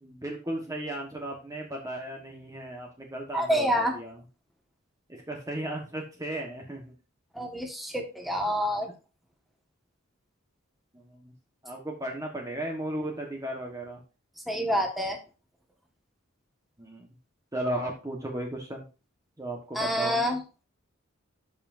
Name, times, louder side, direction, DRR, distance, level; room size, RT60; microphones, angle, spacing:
voice 1, 0.0-4.2 5.1-6.9 10.9-11.3 11.6-14.0 16.8-17.1 17.5-18.8 19.4-20.2, right 1 dB, 15° right, 0 dB, 1.3 m, -35 dB
voice 2, 3.3-3.9 7.3-8.9 14.5-15.2 19.7-20.4, equal, ahead, 1 dB, 1.5 m, -27 dB
12.0 x 5.7 x 2.6 m, 0.33 s
head